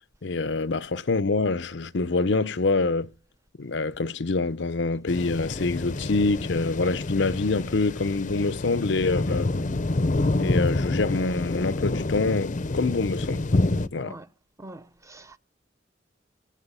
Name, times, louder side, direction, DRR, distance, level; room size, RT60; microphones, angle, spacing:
voice 1, 0.2-3.1 3.6-9.5 10.3-13.4 13.9-14.2, left 3 dB, 75° left, 0.7 m, -26 dB
sound 1, 5.1-13.9, left 2 dB, 45° left, 0.7 m, -27 dB
voice 2, 13.9-14.3 14.6-15.4, right 2 dB, 15° right, 0.9 m, -44 dB
24.0 x 9.2 x 5.6 m
head